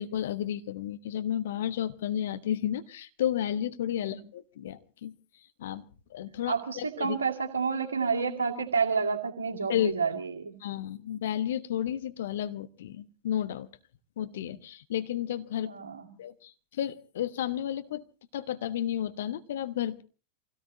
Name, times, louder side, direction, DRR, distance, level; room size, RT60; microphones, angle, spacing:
voice 1, 0.0-5.1 5.6-5.8 6.1-7.2 9.7-9.9 10.6-13.7 14.2-15.7 16.2-18.0 18.3-20.0, left 11 dB, 60° left, 10 dB, 1.1 m, -32 dB
voice 2, 6.5-10.6 15.6-16.1, right 5 dB, 70° right, 2 dB, 2.3 m, -29 dB
27.5 x 17.5 x 2.9 m, 0.36 s
figure-of-eight pair, 90°, 0 cm